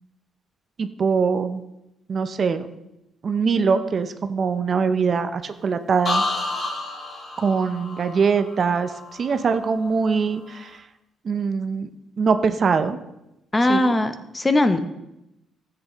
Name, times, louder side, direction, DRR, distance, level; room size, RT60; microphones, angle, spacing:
voice 1, 0.8-1.6 2.1-2.7 3.2-6.2 7.4-10.8 11.2-11.9 12.2-13.0 13.7-13.9, right 5 dB, 50° right, 9 dB, 0.6 m, -22 dB
sound 1, 6.0-9.9 10.2-10.7, left 2 dB, 40° left, 2.0 m, -30 dB
voice 2, 13.5-14.8, left 2 dB, 20° left, 10 dB, 0.7 m, -20 dB
14.0 x 7.8 x 3.0 m, 0.89 s
cardioid pair, 90°, 0 cm